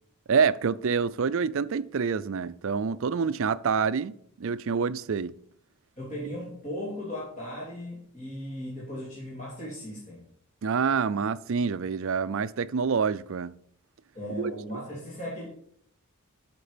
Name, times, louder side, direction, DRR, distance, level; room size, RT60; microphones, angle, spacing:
voice 1, 0.3-5.3 10.6-13.5 14.4-14.5, right 5 dB, 60° right, 0.4 m, -27 dB
voice 2, 6.0-10.2 14.1-15.5, equal, 35° left, 3.0 m, -37 dB
13.0 x 6.0 x 5.1 m
head